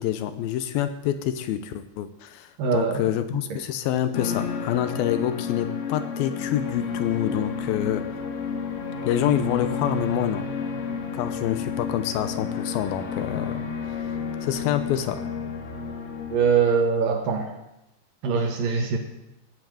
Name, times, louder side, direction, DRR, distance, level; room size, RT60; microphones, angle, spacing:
voice 1, 0.0-8.1 9.0-10.5 11.1-13.6 13.9-14.0 14.4-15.2, left 11 dB, 80° left, 11 dB, 2.1 m, -27 dB
voice 2, 2.6-3.0 3.3-3.6 16.3-17.5 18.2-19.0, right 6 dB, 60° right, 4 dB, 2.6 m, -23 dB
sound 1, 4.1-16.4, left 5 dB, 60° left, 3.7 m, -31 dB
16.0 x 8.3 x 9.2 m, 0.92 s
omnidirectional pair, 5.2 m